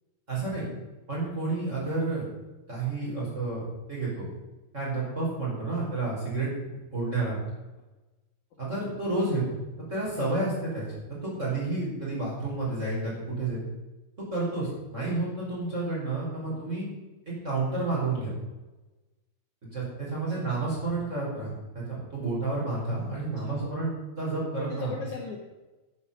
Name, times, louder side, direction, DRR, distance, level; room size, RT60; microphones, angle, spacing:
voice 1, 0.3-0.6 1.1-2.3 2.7-3.6 3.9-4.3 4.7-6.5 6.9-7.4 8.6-9.6 9.9-10.8 11.2-13.6 14.3-16.9 17.4-18.3 19.6-24.9, right 3 dB, 15° right, -5 dB, 4.9 m, -30 dB
voice 2, 15.1-15.4 16.5-16.7 20.1-20.5 23.1-23.8 24.7-25.4, left 5 dB, 75° left, -1 dB, 1.8 m, -41 dB
10.0 x 9.7 x 7.3 m, 1.1 s
omnidirectional pair, 6.0 m